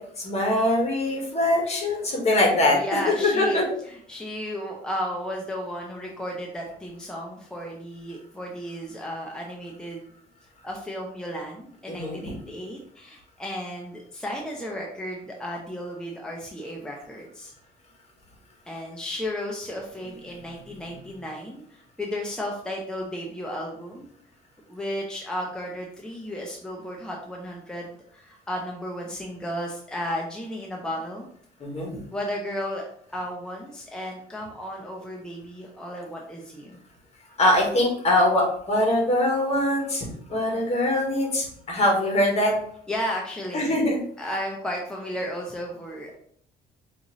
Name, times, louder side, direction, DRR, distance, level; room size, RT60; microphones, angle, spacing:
voice 1, 0.2-2.8 3.4-3.6 11.9-12.3 31.6-31.9 37.4-40.0 40.3-42.5 43.5-44.0, left 1 dB, 40° left, 0 dB, 1.5 m, -22 dB
voice 2, 2.7-10.0 10.6-17.5 18.7-24.1 24.7-31.3 32.1-32.8 33.1-36.8 42.9-43.8 44.2-46.2, equal, 5° left, -1 dB, 0.6 m, -34 dB
5.0 x 2.5 x 3.1 m, 0.63 s
cardioid pair, 110°, 17 cm